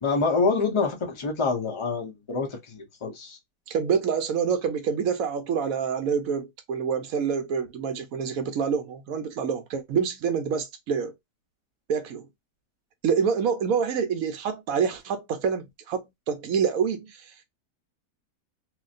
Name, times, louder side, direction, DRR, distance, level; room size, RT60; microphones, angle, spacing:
voice 1, 0.0-3.4, left 4 dB, 25° left, 0.7 m, -26 dB
voice 2, 3.7-11.1 11.9-12.3 13.0-17.3, right 6 dB, 75° right, 1.1 m, -27 dB
2.9 x 2.6 x 2.5 m
omnidirectional pair, 1.6 m